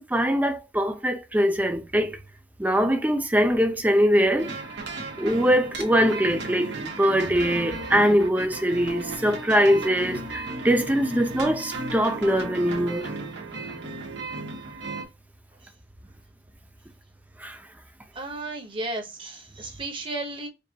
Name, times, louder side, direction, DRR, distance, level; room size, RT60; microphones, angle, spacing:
voice 1, 0.0-2.2 2.6-4.5 5.2-13.1 17.4-17.6, equal, 10° right, 0.6 m, -22 dB
sound 1, 4.4-15.0, right 2 dB, 85° right, 1.4 m, -35 dB
voice 2, 18.1-20.5, right 2 dB, 30° right, 0.9 m, -34 dB
5.3 x 2.5 x 2.9 m
head